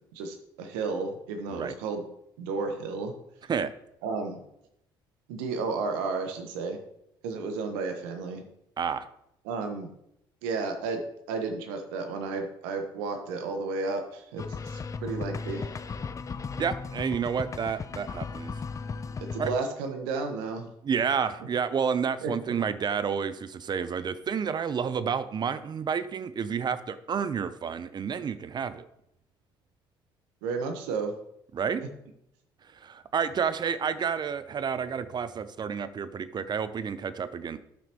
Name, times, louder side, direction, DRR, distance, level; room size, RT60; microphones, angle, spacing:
voice 1, 0.1-2.0 2.4-3.1 4.0-4.4 5.3-6.8 7.2-8.4 9.4-9.9 10.4-11.0 11.3-15.9 19.3-20.7 22.2-22.3 30.4-31.1 31.8-31.9, right 4 dB, 80° right, 6 dB, 1.2 m, -32 dB
voice 2, 8.8-9.1 16.6-18.5 19.4-19.5 20.8-28.8 31.5-31.8 32.8-37.6, right 6 dB, 40° right, 13 dB, 0.6 m, -30 dB
sound 1, 14.4-19.6, left 4 dB, 30° left, 0.4 m, -36 dB
12.5 x 6.0 x 3.0 m, 0.78 s
hypercardioid pair, 60°, 12 cm